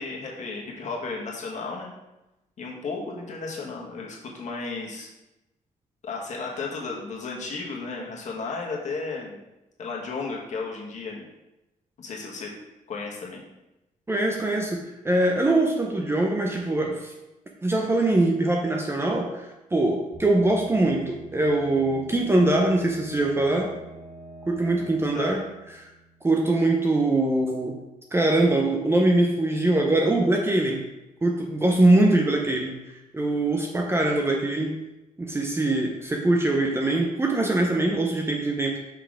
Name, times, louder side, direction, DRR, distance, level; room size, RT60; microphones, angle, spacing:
voice 1, 0.0-1.9 2.6-5.1 6.0-9.4 9.8-11.2 12.0-12.5 12.9-13.4 25.1-25.3, left 4 dB, 55° left, -2 dB, 1.6 m, -34 dB
voice 2, 14.1-17.1 17.6-23.7 24.5-25.4 25.8-25.9 26.2-27.8 28.1-30.9 31.2-32.8 33.1-34.8 35.2-38.8, right 2 dB, 15° right, 0 dB, 0.7 m, -22 dB
sound 1, 20.1-26.7, right 2 dB, 35° right, 1.8 m, -46 dB
5.7 x 4.1 x 4.9 m, 0.96 s
cardioid pair, 115°, 14 cm